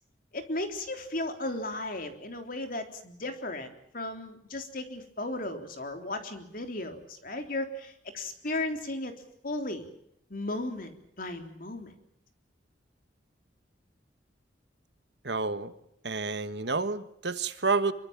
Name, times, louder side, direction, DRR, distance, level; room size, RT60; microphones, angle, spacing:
voice 1, 0.3-9.1 9.4-9.9 10.3-10.9 11.2-11.9, left 2 dB, 50° left, 6 dB, 3.6 m, -35 dB
voice 2, 15.2-15.7 16.0-17.9, right 4 dB, 65° right, 11 dB, 1.6 m, -29 dB
25.5 x 24.0 x 7.4 m, 0.73 s
head